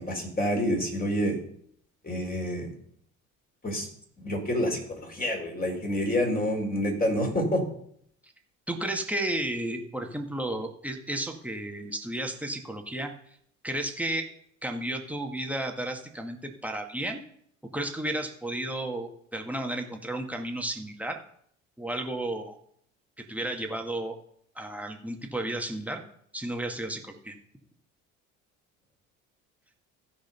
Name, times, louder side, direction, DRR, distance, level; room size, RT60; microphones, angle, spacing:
voice 1, 0.0-1.4 2.0-2.7 3.6-3.9 4.2-7.6, equal, 20° left, 1 dB, 4.3 m, -28 dB
voice 2, 8.7-13.1 13.6-14.3 14.6-17.2 17.7-21.2 21.8-22.6 23.2-24.2 24.6-26.0 26.3-27.4, right 1 dB, 5° right, 3 dB, 1.9 m, -33 dB
15.0 x 5.2 x 5.5 m, 0.67 s
hypercardioid pair, 60°, 40 cm